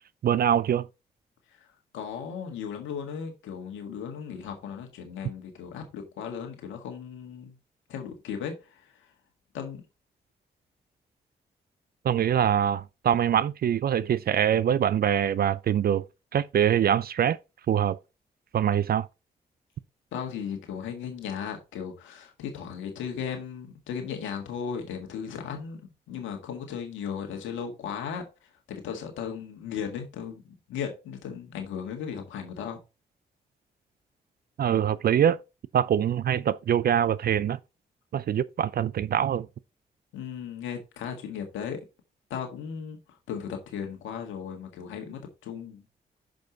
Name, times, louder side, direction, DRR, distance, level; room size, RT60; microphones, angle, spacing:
voice 1, 0.2-0.9 12.0-16.0 16.3-17.4 17.7-18.0 18.5-19.1 34.6-35.4 35.7-37.6 38.1-39.5, right 9 dB, 55° right, 0.4 m, -24 dB
voice 2, 1.9-7.6 7.9-8.9 9.5-9.8 20.1-28.2 28.7-32.8 40.1-41.8 42.3-43.0 43.3-45.8, left 7 dB, 85° left, 1.7 m, -36 dB
6.2 x 5.2 x 4.0 m
hypercardioid pair, 40°, 19 cm